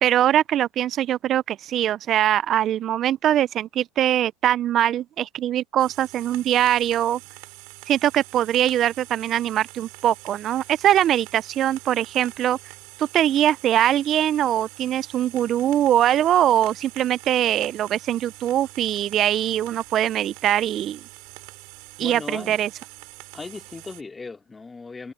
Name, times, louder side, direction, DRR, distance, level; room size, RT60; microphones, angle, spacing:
voice 1, 0.0-7.2 7.9-12.6 13.0-21.0 22.0-22.7, right 11 dB, 40° right, 0.5 m, -22 dB
sound 1, 5.8-24.0, right 29 dB, 65° right, 4.1 m, -45 dB
voice 2, 22.0-22.6 23.3-25.1, left 4 dB, 15° left, 2.6 m, -37 dB
supercardioid pair, 105°, 0 cm